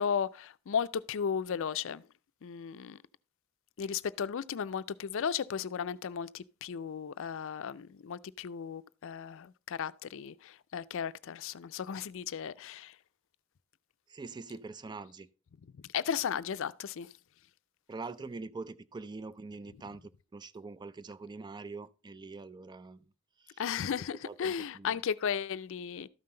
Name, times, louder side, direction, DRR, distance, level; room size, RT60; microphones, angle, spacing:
voice 1, 0.0-2.0 2.4-3.0 3.8-12.9 15.9-17.1 23.6-26.1, left 7 dB, 65° left, 0.4 m, -35 dB
voice 2, 14.1-15.3 17.9-20.0 20.3-23.0 23.4-23.6 24.2-25.0, right 3 dB, 20° right, 0.4 m, -44 dB
13.0 x 5.7 x 3.8 m
head